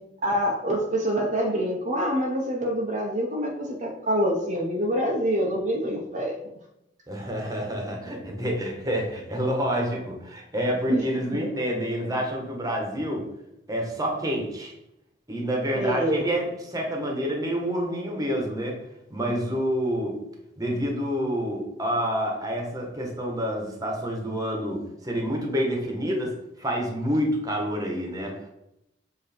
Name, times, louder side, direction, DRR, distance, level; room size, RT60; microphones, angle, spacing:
voice 1, 0.2-6.3 10.9-11.0 11.3-11.5 15.7-16.2, equal, 45° right, -2 dB, 0.9 m, -26 dB
voice 2, 7.1-13.3 13.7-14.7 15.3-18.8 19.1-20.2 20.6-28.5, equal, 20° right, 1 dB, 1.4 m, -28 dB
7.5 x 3.1 x 4.5 m, 0.83 s
head